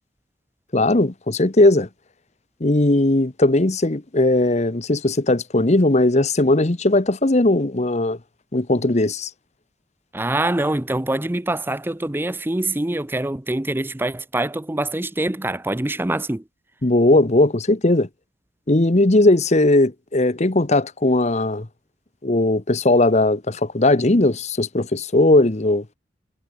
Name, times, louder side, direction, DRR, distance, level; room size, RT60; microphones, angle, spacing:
voice 1, 0.7-1.9 2.6-8.2 8.5-9.3 16.8-18.1 18.7-21.7 22.2-25.8, left 2 dB, 35° left, 1.1 m, -18 dB
voice 2, 10.1-16.4, right 1 dB, 10° right, 0.6 m, -24 dB
head